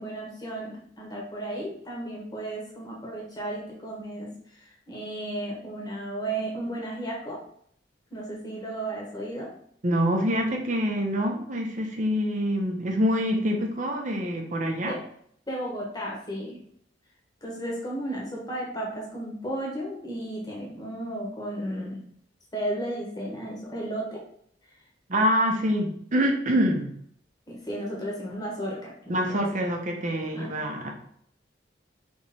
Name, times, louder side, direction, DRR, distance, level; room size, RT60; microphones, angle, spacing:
voice 1, 0.0-7.4 8.1-9.5 14.8-15.0 15.5-16.6 17.4-22.0 22.5-24.2 27.5-29.5 30.3-30.5, right 1 dB, 20° left, -3 dB, 1.1 m, -34 dB
voice 2, 9.8-15.0 25.1-26.9 29.1-30.9, equal, 45° right, 2 dB, 0.7 m, -25 dB
3.5 x 3.2 x 4.1 m, 0.64 s
head